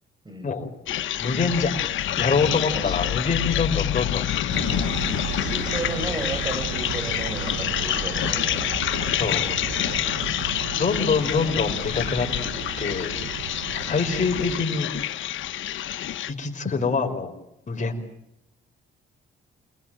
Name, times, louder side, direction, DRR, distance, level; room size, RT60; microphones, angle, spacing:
sound 1, 0.9-16.3, left 12 dB, 75° left, 1.4 m, -27 dB
voice 1, 1.2-1.8 2.2-4.9 9.1-9.5 10.7-13.2 13.7-14.9 16.3-17.3 17.7-18.0, left 4 dB, 40° left, 3 dB, 5.3 m, -25 dB
voice 2, 2.7-3.2 5.4-9.0 9.4-9.5, right 1 dB, 20° right, 7 dB, 7.8 m, -34 dB
sound 2, 4.5-14.7, right 7 dB, 85° right, 1.8 m, -34 dB
28.5 x 21.0 x 9.1 m, 0.86 s
cardioid pair, 90°, 20 cm